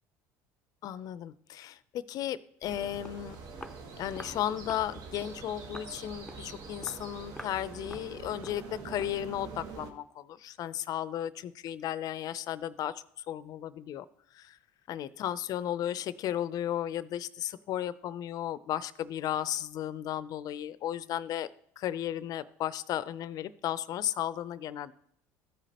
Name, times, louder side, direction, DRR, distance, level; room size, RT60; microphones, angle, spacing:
voice 1, 0.8-3.4 4.0-14.1 14.3-14.6 14.9-21.5 21.8-24.9, left 11 dB, 55° left, 16 dB, 0.5 m, -35 dB
sound 1, 2.6-9.9, right 4 dB, 60° right, 1.3 m, -45 dB
Walk footsteps, 3.0-3.2 3.6-3.8 4.2-4.4 4.7-4.9 5.2-5.4 5.7-5.9 6.3-6.5 6.8-7.0 7.4-7.6 7.9-8.1 8.4-8.6 9.0-9.2, left 2 dB, 5° left, 0.6 m, -46 dB
14.0 x 5.1 x 2.9 m, 0.67 s
supercardioid pair, 95°, 8 cm